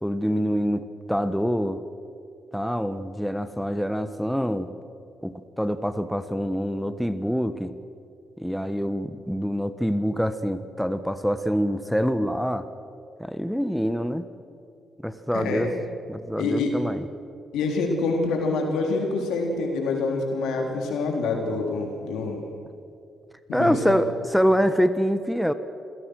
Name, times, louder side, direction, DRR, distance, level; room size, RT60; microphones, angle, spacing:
voice 1, 0.0-1.8 2.5-4.7 5.2-7.7 8.4-12.7 13.2-14.3 15.0-15.7 16.1-17.1 23.5-25.5, equal, ahead, 11 dB, 1.3 m, -25 dB
voice 2, 15.3-15.7 16.4-16.7 17.5-22.4 23.5-24.0, left 3 dB, 75° left, 2 dB, 3.6 m, -26 dB
27.5 x 17.0 x 6.4 m, 2.4 s
hypercardioid pair, 50°, 0 cm